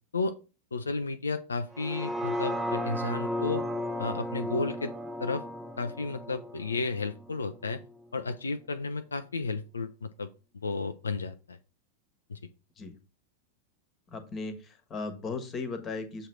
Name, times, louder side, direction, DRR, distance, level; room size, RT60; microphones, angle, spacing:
voice 1, 0.7-3.7 4.0-4.9 5.2-5.4 5.8-7.8 8.1-10.3 10.6-11.6 12.3-12.4, left 3 dB, 75° left, 10 dB, 0.4 m, -33 dB
sound 1, 1.7-7.9 8.3-8.4, left 1 dB, 10° right, 0.8 m, -34 dB
voice 2, 14.1-16.3, left 4 dB, 25° left, 8 dB, 1.3 m, -37 dB
7.5 x 3.1 x 5.8 m, 0.32 s
figure-of-eight pair, 90°, 0 cm